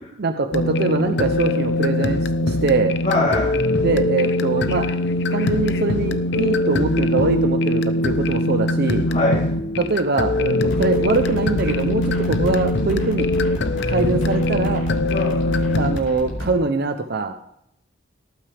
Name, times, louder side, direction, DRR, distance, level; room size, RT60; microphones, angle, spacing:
voice 1, 0.2-3.0 3.7-4.9 5.3-9.1 9.8-13.3 13.9-14.8 15.8-17.3, right 3 dB, 55° right, 7 dB, 0.7 m, -23 dB
sound 1, 0.5-16.0, left 1 dB, 65° left, 0.8 m, -22 dB
voice 2, 3.0-3.5 9.1-9.4 15.1-15.5, left 2 dB, 40° left, -6 dB, 3.5 m, -22 dB
sound 2, 10.6-16.5, equal, 80° left, 5.0 m, -30 dB
19.0 x 9.0 x 3.5 m, 0.78 s
head